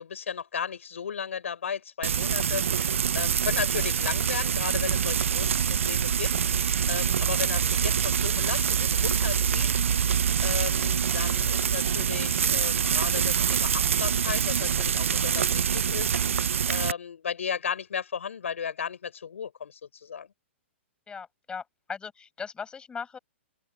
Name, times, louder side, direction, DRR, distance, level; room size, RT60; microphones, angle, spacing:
voice 1, 0.0-2.6 3.1-9.7 10.4-16.1 16.7-20.3, left 7 dB, 85° left, 6.8 m, -35 dB
Frying (food), 2.0-16.9, right 8 dB, 85° right, 0.4 m, -25 dB
voice 2, 21.1-23.2, left 6 dB, 15° left, 7.4 m, -38 dB
open air
hypercardioid pair, 135°, 7 cm